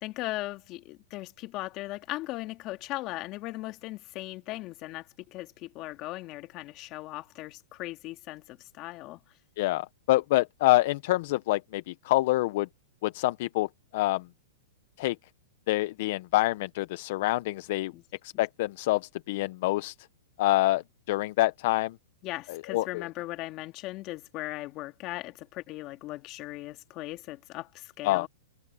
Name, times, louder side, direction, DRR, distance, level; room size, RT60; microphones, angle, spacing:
voice 1, 0.0-9.2 17.9-18.0 18.3-18.4 22.2-28.3, left 18 dB, 35° left, 2.4 m, -38 dB
voice 2, 9.6-12.7 13.0-13.7 13.9-14.2 15.0-15.2 15.7-17.9 18.4-19.9 20.4-20.8 21.1-21.9 22.5-23.0 28.0-28.3, left 18 dB, 55° left, 0.8 m, -26 dB
hypercardioid pair, 135°, 0 cm